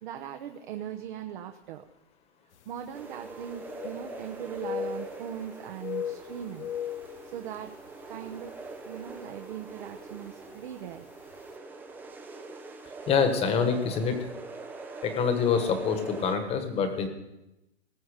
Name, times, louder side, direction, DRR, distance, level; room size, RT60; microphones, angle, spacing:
voice 1, 0.0-1.8 2.7-6.7 7.3-7.7 8.1-8.5 8.8-11.0, right 10 dB, 45° right, 6 dB, 0.9 m, -39 dB
sound 1, 2.6-2.7 3.0-4.3 4.6-5.5 5.7-7.9 8.3-8.5 9.1-9.4 10.4-10.5 10.9-11.0, left 8 dB, 80° left, 0.9 m, -37 dB
sound 2, 2.9-16.4, right 3 dB, 5° right, 0.6 m, -43 dB
voice 2, 13.1-14.2 15.0-17.1, left 6 dB, 20° left, 7 dB, 1.4 m, -26 dB
19.5 x 7.1 x 5.0 m, 0.92 s
hypercardioid pair, 150°, 34 cm